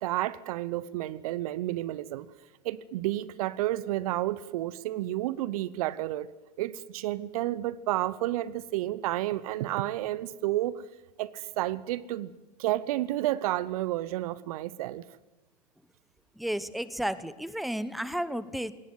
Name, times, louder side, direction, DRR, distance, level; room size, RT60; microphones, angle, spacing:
voice 1, 0.0-2.3 2.6-6.3 6.6-10.8 11.2-12.3 12.6-15.1, right 15 dB, 60° right, 1.0 m, -31 dB
voice 2, 16.4-18.7, equal, ahead, 1.1 m, -32 dB
21.0 x 18.5 x 9.6 m
figure-of-eight pair, 85°, 21 cm